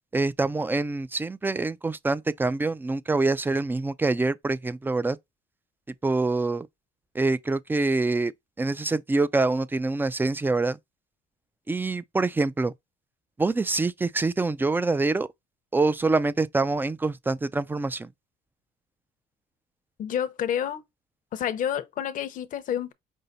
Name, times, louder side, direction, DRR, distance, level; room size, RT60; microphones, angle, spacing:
voice 1, 0.1-5.2 6.0-6.7 7.1-8.3 8.6-10.8 11.7-12.7 13.4-15.3 15.7-18.1, right 3 dB, 10° right, 0.4 m, -25 dB
voice 2, 20.0-20.8 21.3-22.9, left 9 dB, 50° left, 0.7 m, -29 dB
5.4 x 2.1 x 4.0 m
cardioid pair, 110°, 17 cm